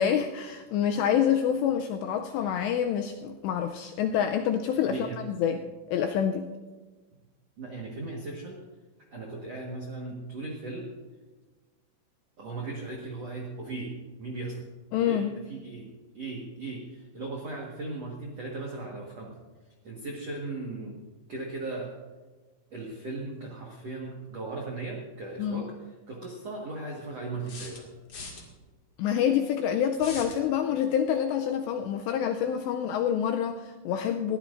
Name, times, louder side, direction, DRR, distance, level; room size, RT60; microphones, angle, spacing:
voice 1, 0.0-5.6 5.9-6.5 14.9-15.3 25.4-25.6 29.0-34.4, left 9 dB, 85° left, 5 dB, 2.5 m, -27 dB
voice 2, 4.9-5.2 7.6-8.6 9.1-10.9 12.4-14.6 15.0-15.9 16.1-19.4 19.8-21.0 21.3-21.9 22.7-25.7 26.1-27.9, right 2 dB, 70° right, -2 dB, 1.5 m, -37 dB
sound 1, 25.4-25.5 27.5-28.4 30.0-30.4, left 3 dB, 45° left, 1.7 m, -41 dB
21.0 x 16.0 x 2.6 m, 1.3 s
omnidirectional pair, 5.6 m